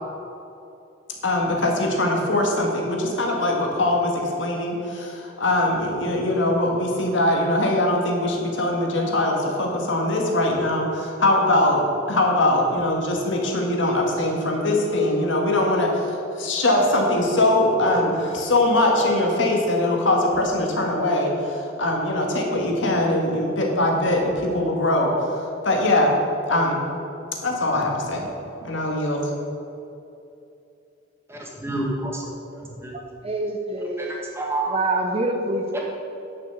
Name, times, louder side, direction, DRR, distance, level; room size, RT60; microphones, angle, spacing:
voice 1, 1.2-26.2 26.5-26.8 27.4-28.3 28.6-29.3, left 1 dB, 75° left, 1 dB, 1.8 m, -22 dB
voice 2, 31.3-32.3 32.5-32.9 34.0-34.7 35.7-35.8, right 2 dB, 15° right, -2 dB, 1.6 m, -29 dB
voice 3, 33.2-34.1 34.7-35.8, right 2 dB, 30° right, 4 dB, 0.8 m, -25 dB
10.5 x 6.2 x 7.1 m, 2.8 s
head